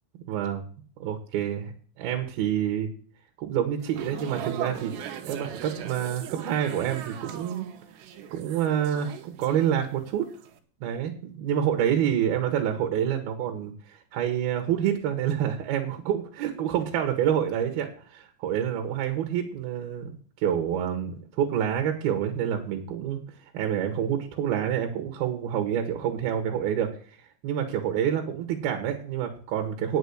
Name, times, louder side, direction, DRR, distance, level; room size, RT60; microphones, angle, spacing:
voice 1, 0.3-0.7 1.0-1.7 2.0-2.9 3.4-4.9 5.3-7.7 8.3-10.3 10.8-20.1 20.4-23.2 23.5-27.2 27.4-30.0, right 9 dB, 70° right, 5 dB, 2.9 m, -27 dB
sound 1, 3.8-10.1 10.3-10.6, right 9 dB, 85° right, 3.3 m, -39 dB
9.2 x 7.0 x 8.0 m, 0.44 s
omnidirectional pair, 4.9 m